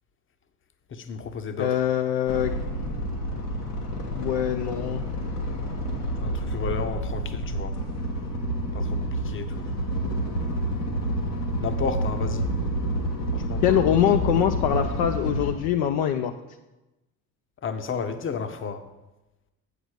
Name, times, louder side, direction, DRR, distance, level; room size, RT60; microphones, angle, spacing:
voice 1, 0.9-1.7 6.2-7.8 8.7-9.6 11.6-12.5 13.3-13.8 17.6-18.9, left 5 dB, 25° left, 8 dB, 0.8 m, -32 dB
voice 2, 1.6-2.5 4.2-5.0 13.6-16.3, left 10 dB, 55° left, 6 dB, 0.6 m, -23 dB
sound 1, 2.3-15.5, equal, 85° left, 1.3 m, -29 dB
7.9 x 5.0 x 6.4 m, 1.0 s
figure-of-eight pair, 55°, 45 cm